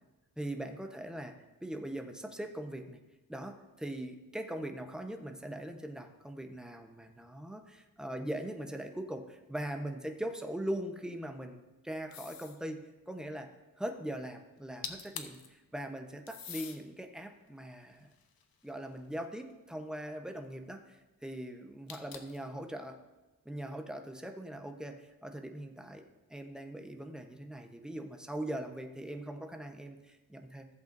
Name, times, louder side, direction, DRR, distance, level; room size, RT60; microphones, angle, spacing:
voice 1, 0.4-3.0 3.3-18.1 18.6-23.0 23.4-26.0 26.3-30.7, right 1 dB, ahead, 4 dB, 0.9 m, -41 dB
sound 1, 12.1-12.6 14.6-14.7 14.8-15.5 16.3-16.8 17.5-18.9 21.9-22.5, left 7 dB, 75° left, 1.0 m, -45 dB
15.0 x 8.0 x 2.6 m, 1.2 s
wide cardioid pair, 110°, 36 cm